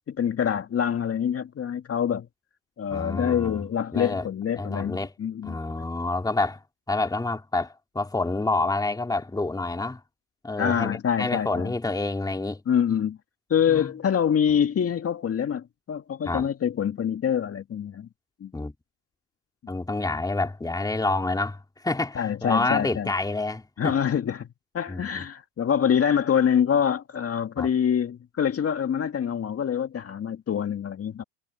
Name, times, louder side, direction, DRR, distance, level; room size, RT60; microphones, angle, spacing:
voice 1, 0.1-2.3 2.8-5.9 10.6-11.7 12.7-13.2 13.5-18.1 18.4-18.5 22.2-23.1 23.8-24.5 24.7-31.2, left 8 dB, 30° left, 2.1 m, -25 dB
voice 2, 2.9-3.6 3.9-4.3 4.6-5.1 5.4-6.6 6.9-10.0 10.4-12.6 13.7-13.9 16.3-16.5 18.5-18.7 19.7-23.9 24.9-25.2 27.6-27.7, left 2 dB, 10° left, 2.5 m, -28 dB
hypercardioid pair, 90°, 46 cm